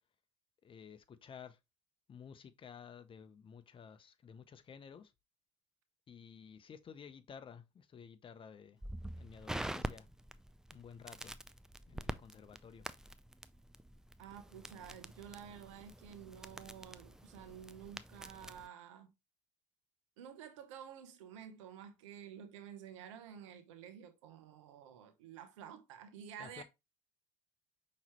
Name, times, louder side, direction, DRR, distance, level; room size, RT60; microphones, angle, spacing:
voice 1, 0.6-1.6 2.1-5.1 6.1-8.8 9.1-10.1 10.7-11.3 11.9-12.9 26.4-26.6, left 7 dB, 35° left, 0.7 m, -53 dB
Crackle, 8.8-18.7, right 1 dB, 5° right, 0.3 m, -46 dB
voice 2, 14.2-19.1 20.2-26.6, right 8 dB, 85° right, 0.8 m, -51 dB
5.7 x 3.1 x 2.9 m
hypercardioid pair, 70°, 16 cm